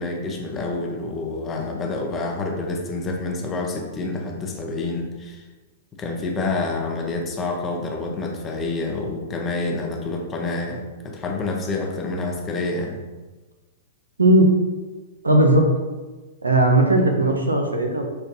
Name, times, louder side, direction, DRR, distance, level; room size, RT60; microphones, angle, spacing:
voice 1, 0.0-5.4 5.9-13.0, left 3 dB, 25° left, 1 dB, 0.6 m, -28 dB
voice 2, 15.2-15.6 16.4-18.0, right 1 dB, 90° right, 2 dB, 0.6 m, -17 dB
5.4 x 2.2 x 2.6 m, 1.2 s
figure-of-eight pair, 110°, 0 cm